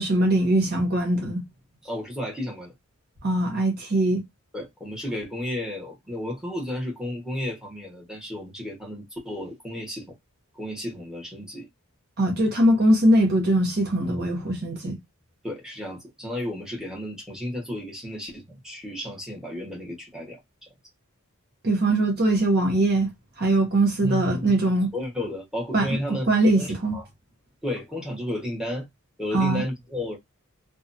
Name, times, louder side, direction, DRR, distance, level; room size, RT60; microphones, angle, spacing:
voice 1, 0.0-1.4 3.2-4.2 12.2-15.0 21.6-23.1 23.4-24.9 25.7-27.0 29.3-29.6, right 1 dB, 50° right, 0.8 m, -21 dB
voice 2, 1.8-2.7 4.5-10.1 10.5-11.7 15.4-20.4 21.9-22.0 24.0-24.5 24.9-26.2 26.5-27.0 27.6-28.8 29.2-30.2, left 1 dB, 5° right, 1.0 m, -33 dB
2.7 x 2.2 x 2.6 m
head